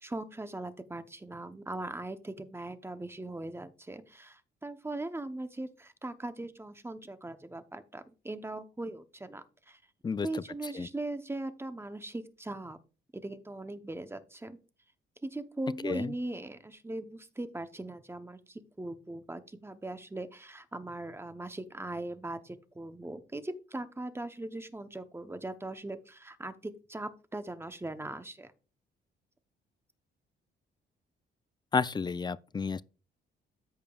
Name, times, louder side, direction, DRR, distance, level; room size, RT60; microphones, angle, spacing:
voice 1, 0.0-9.8 10.2-12.8 13.1-14.6 15.2-28.5, right 2 dB, 10° right, 0.7 m, -40 dB
voice 2, 31.7-32.8, left 5 dB, 20° left, 0.3 m, -31 dB
13.5 x 5.1 x 2.3 m
cardioid pair, 90°, 20 cm